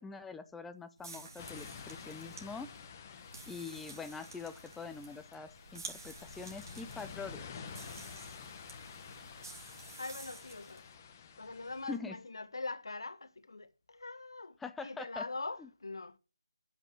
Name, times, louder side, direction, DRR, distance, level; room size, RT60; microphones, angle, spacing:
voice 1, 0.0-2.7 3.5-7.5 11.9-12.2 14.6-15.2 15.6-15.7, left 4 dB, 5° left, 0.5 m, -44 dB
sound 1, 1.0-10.9, right 3 dB, 55° right, 4.4 m, -51 dB
sound 2, 1.4-12.0, left 6 dB, 30° left, 1.4 m, -50 dB
voice 2, 10.0-10.9 11.4-16.2, left 3 dB, 70° left, 1.1 m, -43 dB
8.9 x 7.9 x 6.1 m
figure-of-eight pair, 155°, 2 cm